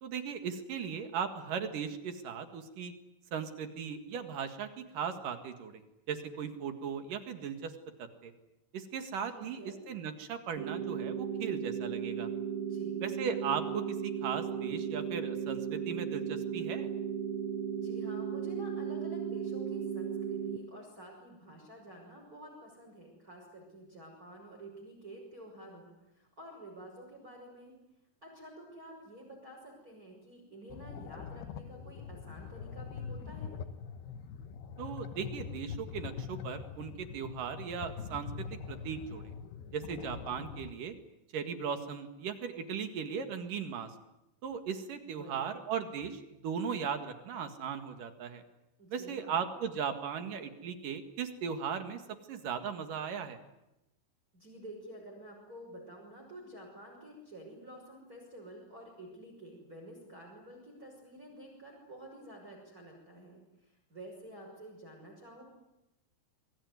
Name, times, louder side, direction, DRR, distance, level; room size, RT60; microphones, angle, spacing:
voice 1, 0.0-2.9 3.3-5.8 6.1-7.7 8.0-8.3 8.7-12.3 13.0-16.9 34.8-39.3 39.7-40.9 41.3-43.9 44.4-48.4 48.9-52.0 52.3-53.4, right 7 dB, 60° right, 8 dB, 3.2 m, -37 dB
voice 2, 9.3-9.9 12.6-13.0 17.7-27.7 28.2-33.6 45.0-45.6 48.8-49.4 54.3-65.4, right 1 dB, 20° right, -1 dB, 6.3 m, -50 dB
sound 1, 10.6-20.6, right 7 dB, 90° right, 3.8 m, -36 dB
sound 2, 30.7-40.7, left 7 dB, 75° left, 3.2 m, -43 dB
26.5 x 22.5 x 9.6 m, 0.91 s
omnidirectional pair, 4.7 m